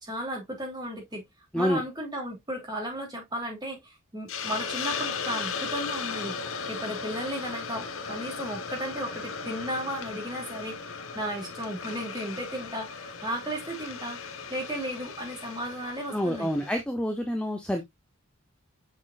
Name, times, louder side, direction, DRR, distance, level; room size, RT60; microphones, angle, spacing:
voice 1, 0.0-1.2 1.5-14.2 14.5-16.5, equal, 20° right, 3.2 m, -35 dB
Hiss, 4.3-16.8, left 5 dB, 80° left, 1.2 m, -37 dB
voice 2, 16.1-17.8, equal, 5° left, 0.8 m, -27 dB
6.4 x 6.1 x 2.5 m
head